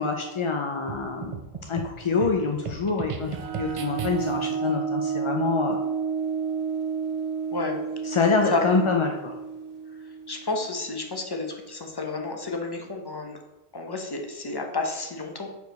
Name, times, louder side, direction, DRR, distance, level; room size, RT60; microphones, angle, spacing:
voice 1, 0.0-1.4 1.7-5.8 8.0-9.3, left 4 dB, 50° left, 3 dB, 0.3 m, -26 dB
sound 1, 0.9-4.5, right 6 dB, 50° right, 0.4 m, -37 dB
sound 2, 3.3-10.7, right 6 dB, 75° right, 0.9 m, -31 dB
voice 2, 10.3-13.4 13.7-15.5, left 3 dB, 25° left, 2 dB, 0.7 m, -31 dB
4.7 x 4.6 x 5.2 m, 1.0 s
omnidirectional pair, 1.1 m